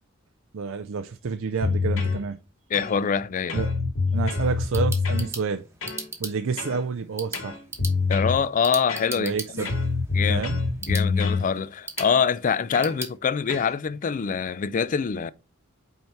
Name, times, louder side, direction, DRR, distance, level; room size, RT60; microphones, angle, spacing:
voice 1, 0.5-2.4 3.5-3.7 4.1-5.6 6.2-7.6 9.2-9.7 10.3-10.6, right 5 dB, 65° right, 0.5 m, -29 dB
sound 1, 1.6-2.2 2.7-3.2 3.5-5.3 5.8-6.1 6.6-6.8 7.3-8.4 8.9-9.4 9.7-11.5 12.0-12.2 12.7-13.0 13.5-13.7, left 4 dB, 75° left, 2.0 m, -26 dB
voice 2, 2.7-3.6 8.1-9.7 10.1-10.5 10.8-15.3, left 6 dB, 40° left, 0.4 m, -25 dB
sound 2, 4.4-13.2, right 3 dB, 15° right, 1.0 m, -40 dB
5.6 x 4.5 x 4.5 m
head